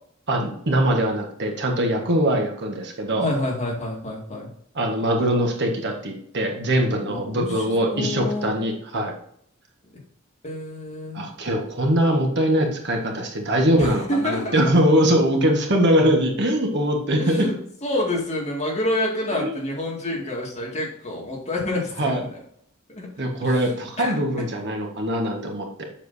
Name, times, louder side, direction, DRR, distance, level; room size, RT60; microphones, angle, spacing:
voice 1, 0.3-3.3 4.7-9.1 11.1-17.5 19.3-19.5 22.0-22.2 23.2-25.8, equal, 55° right, 2 dB, 1.4 m, -22 dB
voice 2, 3.2-4.5 7.0-7.7 7.9-8.5 10.4-11.2 13.8-14.6 17.2-17.5 17.8-22.3 22.9-23.1 23.4-23.7 24.0-24.5, left 1 dB, 30° left, -2 dB, 2.2 m, -28 dB
7.4 x 6.7 x 2.7 m, 0.68 s
head